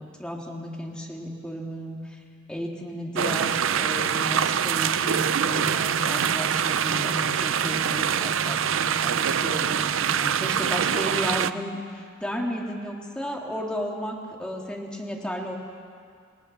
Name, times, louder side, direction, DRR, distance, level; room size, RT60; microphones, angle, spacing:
voice 1, 0.0-2.2 2.5-15.5, equal, 5° left, -1 dB, 2.7 m, -34 dB
sound 1, 3.2-11.5, right 8 dB, 70° right, 0.5 m, -24 dB
28.5 x 17.5 x 7.0 m, 2.2 s
head